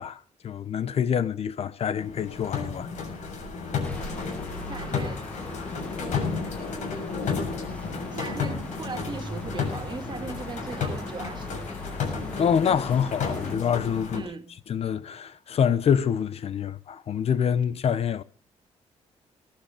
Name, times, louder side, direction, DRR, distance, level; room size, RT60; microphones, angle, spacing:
voice 1, 0.0-2.9 12.4-14.2 14.7-18.2, left 8 dB, 55° left, 1.0 m, -26 dB
sound 1, 2.0-14.2, left 5 dB, 75° left, 7.2 m, -32 dB
sound 2, 3.8-13.6, left 1 dB, 10° left, 1.6 m, -41 dB
voice 2, 4.7-5.3 8.1-11.8 14.1-14.6, right 4 dB, 40° right, 2.2 m, -38 dB
18.5 x 12.0 x 5.1 m
cardioid pair, 120°, 12 cm